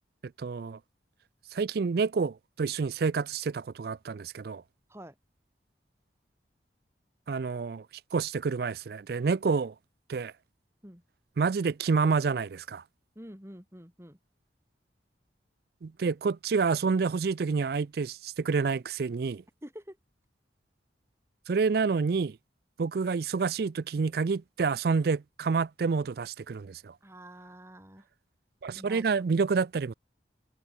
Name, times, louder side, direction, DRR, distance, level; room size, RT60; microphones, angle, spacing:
voice 1, 0.4-0.8 1.5-4.6 7.3-7.9 8.1-9.7 10.1-10.3 11.4-12.8 15.8-19.4 21.5-22.4 22.8-26.9 28.6-29.9, right 5 dB, 55° right, 0.4 m, -28 dB
voice 2, 13.2-14.2 19.6-20.0 27.0-28.1 28.7-29.3, equal, 15° right, 5.2 m, -47 dB
head